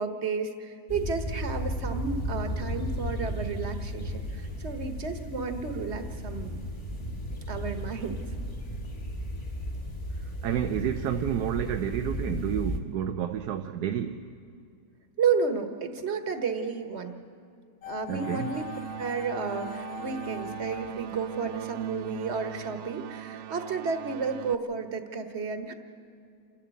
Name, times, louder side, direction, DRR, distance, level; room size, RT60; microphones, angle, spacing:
voice 1, 0.0-6.6 7.5-8.2 15.2-17.1 17.9-18.6 19.0-25.7, right 5 dB, 45° right, 7 dB, 1.4 m, -32 dB
sound 1, 0.9-12.8, equal, 20° left, 1.5 m, -34 dB
voice 2, 10.2-14.3 18.1-18.5, right 9 dB, 90° right, 7 dB, 1.3 m, -30 dB
sound 2, 17.8-21.9 22.2-22.3, left 9 dB, 65° left, 1.4 m, -42 dB
sound 3, 18.1-24.6, right 14 dB, 65° right, 0.9 m, -40 dB
28.0 x 12.0 x 8.3 m, 2.4 s
omnidirectional pair, 1.7 m